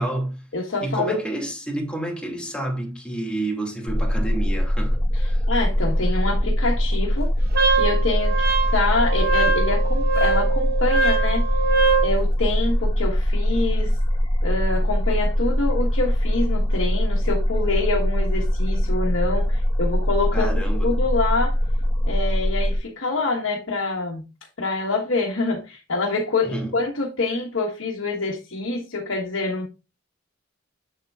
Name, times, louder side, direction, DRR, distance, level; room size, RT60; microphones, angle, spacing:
voice 1, 0.0-0.5 0.8-5.4 20.3-20.9 26.4-26.7, right 1 dB, 5° left, 2.1 m, -29 dB
voice 2, 0.5-1.2 5.1-5.2 5.5-7.3 7.7-8.4 8.7-11.6 12.0-14.0 14.4-20.5 20.8-21.6 22.0-24.2 24.6-29.7, left 3 dB, 70° left, 1.3 m, -26 dB
sound 1, 3.9-22.8, equal, 25° left, 1.1 m, -22 dB
Wind instrument woodwind instrument, 7.5-12.1, right 4 dB, 50° right, 1.0 m, -23 dB
7.6 x 7.4 x 2.4 m
head